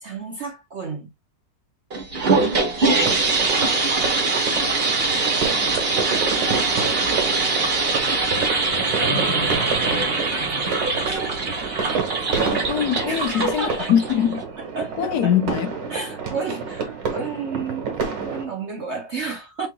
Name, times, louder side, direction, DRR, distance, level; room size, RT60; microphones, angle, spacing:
voice 1, 0.0-1.1 11.1-11.4 13.1-14.0 14.6-15.4 15.9-17.9 18.2-19.7, right 4 dB, 55° right, 0.8 m, -31 dB
sound 1, 1.9-14.4, right 3 dB, 35° right, 2.0 m, -23 dB
sound 2, 3.0-18.5, right 5 dB, 85° right, 2.2 m, -29 dB
voice 2, 12.4-14.4 15.0-15.7, left 9 dB, 70° left, 1.1 m, -22 dB
7.5 x 3.1 x 2.2 m
omnidirectional pair, 1.9 m